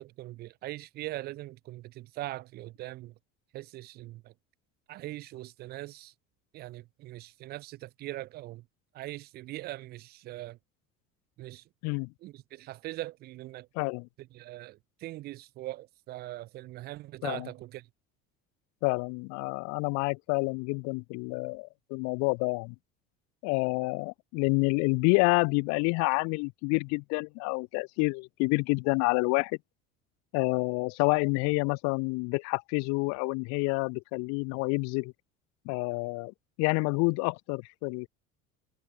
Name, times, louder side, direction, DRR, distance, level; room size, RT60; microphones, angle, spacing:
voice 1, 0.0-3.1 3.5-4.3 4.9-6.1 6.5-8.6 8.9-10.6 11.4-11.6 12.2-13.7 14.2-17.9, right 16 dB, 25° right, 0.3 m, -41 dB
voice 2, 13.8-14.1 17.2-17.5 18.8-22.7 23.4-29.6 30.3-35.1 35.7-38.1, left 31 dB, 40° left, 0.5 m, -28 dB
figure-of-eight pair, 65°, 42 cm